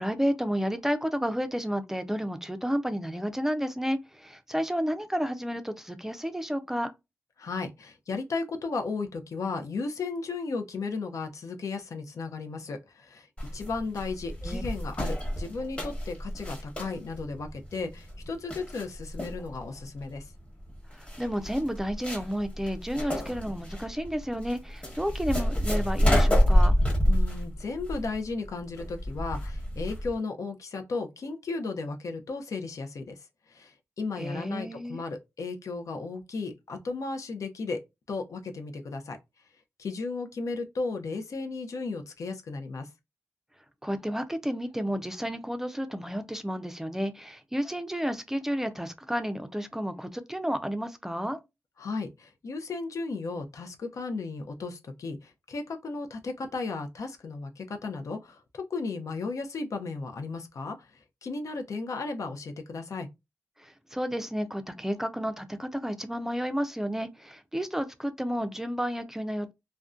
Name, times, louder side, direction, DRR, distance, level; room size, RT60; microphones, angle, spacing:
voice 1, 0.0-6.9 14.4-14.6 20.9-26.7 34.2-35.0 43.8-51.4 63.6-69.5, equal, 5° right, 0.4 m, -31 dB
voice 2, 7.4-13.3 13.5-20.2 27.0-33.2 33.5-37.8 38.1-39.2 39.8-42.9 51.8-60.8 61.2-63.1, left 3 dB, 75° left, 0.5 m, -35 dB
sound 1, 13.4-30.1, equal, 25° left, 1.0 m, -28 dB
2.5 x 2.1 x 2.4 m
cardioid pair, 65°, 6 cm